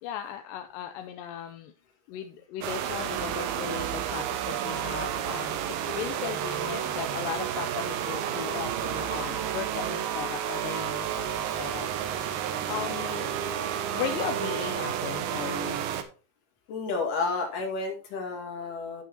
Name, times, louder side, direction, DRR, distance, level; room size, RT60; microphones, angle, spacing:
voice 1, 0.0-1.7 2.1-13.4 13.9-15.9, left 9 dB, 85° left, 6 dB, 2.3 m, -37 dB
sound 1, 2.6-16.0, right 10 dB, 90° right, 2.6 m, -31 dB
voice 2, 16.7-19.0, left 3 dB, 70° left, 2 dB, 3.5 m, -31 dB
13.0 x 6.2 x 2.8 m, 0.35 s
omnidirectional pair, 3.9 m